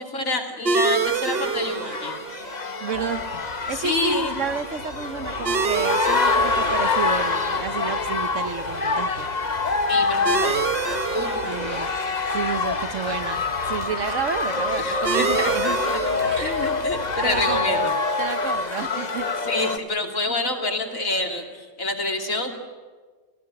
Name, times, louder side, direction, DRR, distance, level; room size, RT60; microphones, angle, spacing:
voice 1, 0.0-2.2 3.7-4.3 9.9-10.6 11.1-11.8 14.8-17.9 19.5-22.6, left 2 dB, 70° left, 3 dB, 3.3 m, -28 dB
sound 1, 0.7-19.8, right 5 dB, 45° right, 1.1 m, -31 dB
sound 2, 1.0-19.8, left 4 dB, 35° left, 1.1 m, -26 dB
voice 2, 2.8-3.3 3.7-9.3 11.4-11.9 12.3-13.4 13.7-15.8 16.3-16.6 17.2-17.9 18.2-19.3, right 6 dB, 65° right, 10 dB, 1.5 m, -30 dB
sound 3, 2.9-17.6, left 1 dB, 55° left, 6.7 m, -43 dB
29.0 x 16.5 x 9.8 m, 1.4 s
omnidirectional pair, 1.4 m